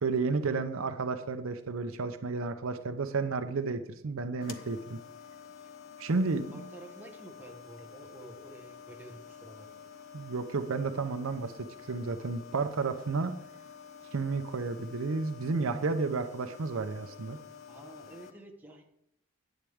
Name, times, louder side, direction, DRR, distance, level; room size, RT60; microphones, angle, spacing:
voice 1, 0.0-5.0 6.0-6.6 10.1-11.5 11.9-13.3 14.1-17.4, right 4 dB, 75° right, 9 dB, 0.6 m, -32 dB
sound 1, 4.4-18.3, left 7 dB, 70° left, 0.8 m, -49 dB
voice 2, 6.1-9.8 17.7-18.8, right 1 dB, 10° right, 1 dB, 1.2 m, -50 dB
10.0 x 9.0 x 3.5 m, 0.75 s
head